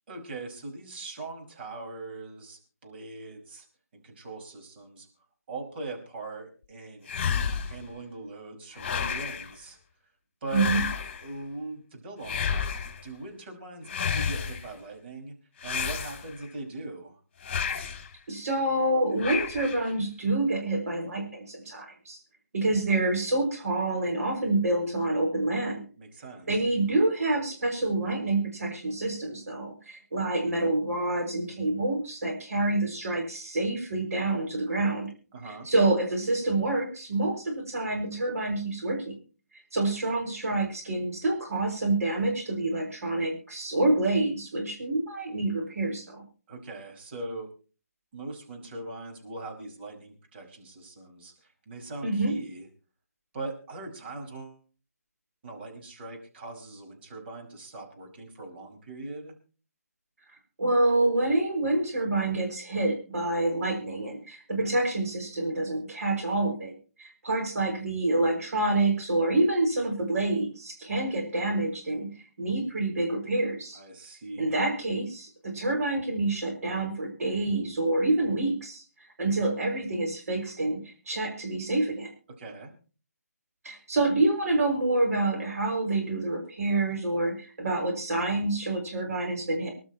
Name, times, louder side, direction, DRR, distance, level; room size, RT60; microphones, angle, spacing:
voice 1, 0.1-3.7 3.9-5.1 5.5-7.1 7.7-9.8 10.4-10.8 11.2-12.7 13.0-15.3 15.6-17.2 26.0-26.5 35.3-35.7 46.5-47.5 48.1-52.7 53.3-54.6 55.4-59.3 73.7-74.6 82.4-82.7, right 2 dB, 40° right, 2 dB, 5.3 m, -41 dB
sound 1, 7.1-7.9 8.8-9.5 10.5-11.3 12.2-13.0 13.9-14.7 15.6-16.5 17.4-18.1 19.2-19.9, left 6 dB, 35° left, 2.4 m, -31 dB
voice 2, 10.5-10.8 18.3-22.2 22.5-25.9 26.5-35.1 35.4-39.1 39.7-46.2 52.0-52.3 60.6-72.1 72.4-73.8 74.4-78.8 79.2-82.1 83.6-89.7, right 2 dB, 65° right, 2 dB, 5.8 m, -27 dB
26.0 x 12.0 x 3.0 m, 0.37 s
figure-of-eight pair, 150°, 9 cm